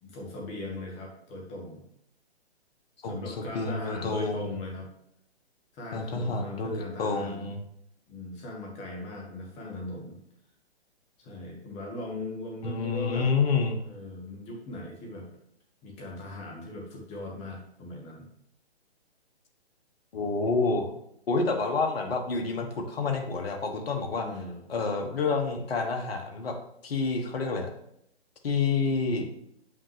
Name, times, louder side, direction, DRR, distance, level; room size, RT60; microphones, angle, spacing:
voice 1, 0.0-1.8 3.0-4.9 5.7-7.5 8.1-10.2 11.2-13.3 13.8-15.3 15.8-18.3 24.1-24.6, left 2 dB, 20° left, 0 dB, 1.5 m, -39 dB
voice 2, 3.0-4.5 5.9-7.6 12.6-13.8 20.1-20.9 21.3-24.2 24.7-26.5 26.8-27.7 28.4-29.3, left 4 dB, 60° left, 3 dB, 1.3 m, -28 dB
7.2 x 5.7 x 3.3 m, 0.73 s
figure-of-eight pair, 135°, 33 cm